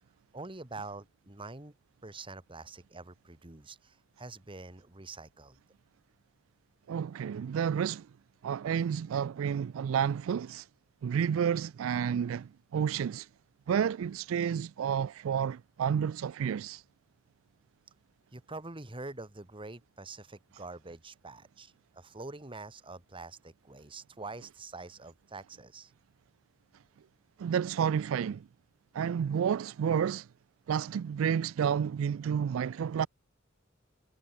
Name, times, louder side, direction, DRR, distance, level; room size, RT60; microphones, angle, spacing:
voice 1, 0.3-1.7 2.0-5.6 18.3-25.9, right 3 dB, 25° right, 1.6 m, -45 dB
voice 2, 6.9-8.1 8.4-10.7 11.0-13.3 13.7-16.8 27.4-28.5 28.9-30.3 30.7-33.1, right 8 dB, 75° right, 0.3 m, -30 dB
head